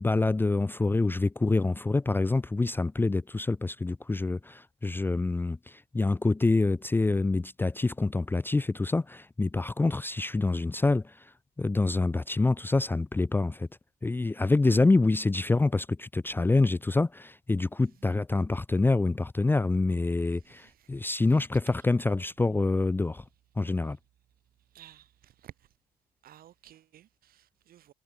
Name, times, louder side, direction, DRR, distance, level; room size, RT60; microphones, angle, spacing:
voice 1, 0.0-11.1 11.6-13.7 14.0-23.2 23.6-24.0, left 3 dB, 10° left, 0.6 m, -26 dB
voice 2, 20.4-20.9 24.7-25.7 26.2-27.9, right 12 dB, 60° right, 2.0 m, -54 dB
cardioid pair, 110°, 17 cm